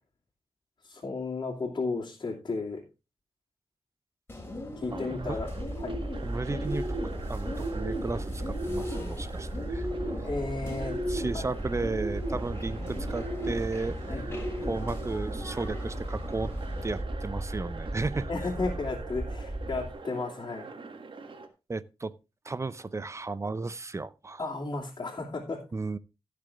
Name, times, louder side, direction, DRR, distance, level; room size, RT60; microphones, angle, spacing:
voice 1, 0.8-2.8 4.8-5.5 5.8-6.0 10.2-11.0 11.3-11.5 14.1-14.3 18.3-20.7 24.4-25.6, left 3 dB, 50° left, 2.9 m, -33 dB
Bird, 4.3-17.0, equal, 25° left, 3.6 m, -38 dB
voice 2, 4.9-5.4 6.2-7.0 7.3-9.9 11.1-14.2 14.6-16.5 16.8-18.3 21.7-22.1 22.4-24.4 25.7-26.0, right 3 dB, 30° right, 0.7 m, -34 dB
sound 1, 4.9-21.5, right 4 dB, 65° right, 1.7 m, -44 dB
sound 2, 5.2-19.9, right 1 dB, 5° right, 1.3 m, -36 dB
15.5 x 6.8 x 3.6 m
wide cardioid pair, 80°, 9 cm